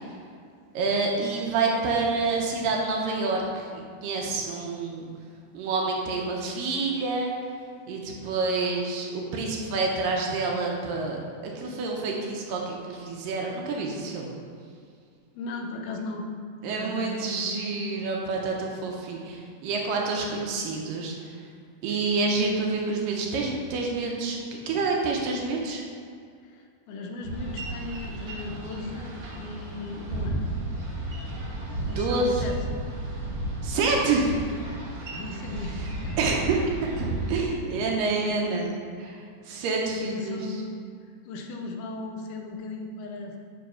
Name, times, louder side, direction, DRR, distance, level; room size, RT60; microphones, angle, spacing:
voice 1, 0.7-5.1 5.5-7.3 7.9-14.3 16.6-21.1 21.8-25.8 31.7-32.4 33.6-34.3 35.8-35.9 36.2-36.6 36.9-38.7 39.0-40.5, right 3 dB, 75° right, 0 dB, 2.4 m, -28 dB
voice 2, 15.4-16.3 16.6-17.2 26.4-30.5 31.9-32.6 35.1-36.1 36.5-36.7 37.7-37.9 38.5-38.7 39.5-39.6 39.9-40.6 41.3-43.4, left 3 dB, 80° left, 2 dB, 2.6 m, -37 dB
Boat Water vehicle, 27.2-37.4, right 2 dB, 50° right, 1.9 m, -33 dB
9.5 x 4.0 x 5.6 m, 2.2 s
omnidirectional pair, 4.2 m